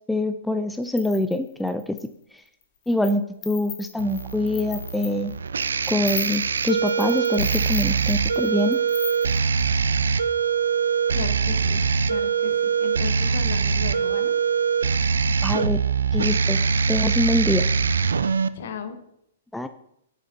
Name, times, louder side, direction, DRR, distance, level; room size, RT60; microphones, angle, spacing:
voice 1, 0.0-2.0 2.3-2.4 2.9-5.3 5.9-8.8 15.3-15.8 16.1-16.6 16.9-17.7 19.5-19.7, left 1 dB, 5° left, 9 dB, 0.3 m, -25 dB
sound 1, 0.8-2.1 2.6-3.2 3.4-9.6, left 9 dB, 35° left, 1.2 m, -37 dB
sound 2, 4.0-18.5, right 6 dB, 70° right, 0.3 m, -23 dB
voice 2, 11.1-14.3 18.5-19.0, left 6 dB, 60° left, 8 dB, 1.0 m, -35 dB
8.2 x 6.5 x 2.8 m, 0.74 s
figure-of-eight pair, 115°, 0 cm